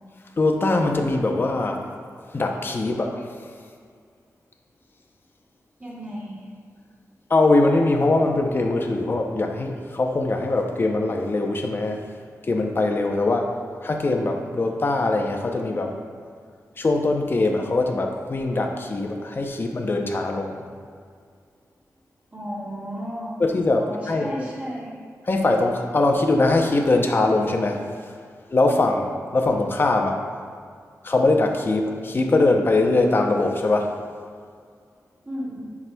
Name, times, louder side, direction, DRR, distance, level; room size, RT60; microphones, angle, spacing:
voice 1, 0.4-1.9 2.3-3.3 7.3-12.0 12.5-13.5 13.8-16.0 16.8-20.7 23.4-24.3 25.3-27.8 28.5-30.2 31.0-34.0, left 2 dB, 40° left, 3 dB, 0.6 m, -22 dB
voice 2, 5.8-6.4 22.3-23.3 23.8-25.0 35.2-35.7, equal, 25° right, -6 dB, 1.6 m, -33 dB
11.0 x 4.7 x 2.2 m, 2.1 s
wide cardioid pair, 135°, 6 cm